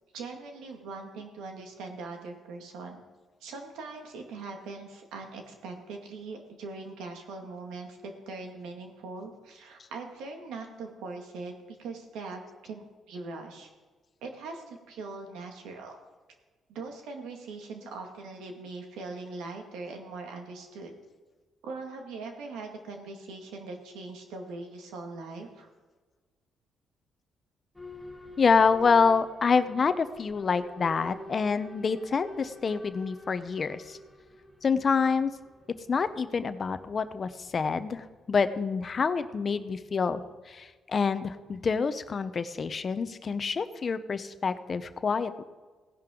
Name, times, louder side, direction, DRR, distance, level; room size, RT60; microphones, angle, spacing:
voice 1, 0.1-3.0 3.4-13.7 14.2-16.0 16.7-20.9 21.6-25.7, right 3 dB, 90° right, 3 dB, 2.0 m, -41 dB
Boat Water vehicle / Alarm, 27.7-38.4, left 1 dB, 5° left, 1.8 m, -49 dB
voice 2, 28.4-34.0 34.6-35.3 35.9-40.2 40.5-45.4, left 5 dB, 40° left, 12 dB, 0.8 m, -27 dB
17.0 x 10.5 x 3.8 m, 1.3 s
cardioid pair, 90°, 0 cm